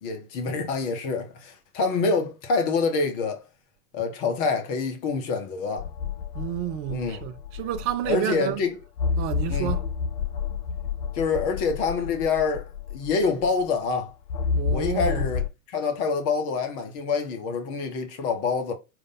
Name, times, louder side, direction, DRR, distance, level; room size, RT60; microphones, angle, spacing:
voice 1, 0.0-3.4 3.9-5.9 6.9-7.2 8.1-8.7 9.5-9.7 11.1-14.1 14.7-18.7, left 4 dB, 35° left, 0.9 m, -26 dB
sound 1, 5.8-8.4 9.0-13.7 14.3-15.5, left 6 dB, 80° left, 0.6 m, -30 dB
voice 2, 6.3-8.7 9.2-9.9 14.6-15.3, right 12 dB, 25° right, 0.4 m, -30 dB
5.0 x 2.6 x 3.9 m
figure-of-eight pair, 100°, 46 cm